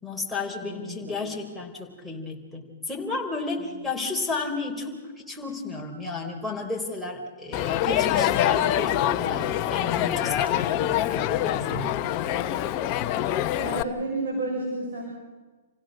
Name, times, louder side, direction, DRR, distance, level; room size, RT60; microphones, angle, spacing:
voice 1, 0.0-12.0, left 3 dB, ahead, 3 dB, 4.2 m, -33 dB
voice 2, 0.6-1.1 3.6-3.7 13.6-15.0, right 2 dB, 60° right, -2 dB, 7.0 m, -31 dB
Crowd, 7.5-13.8, left 12 dB, 40° left, 1.0 m, -25 dB
28.5 x 16.0 x 6.6 m, 1.3 s
hypercardioid pair, 125°, 0 cm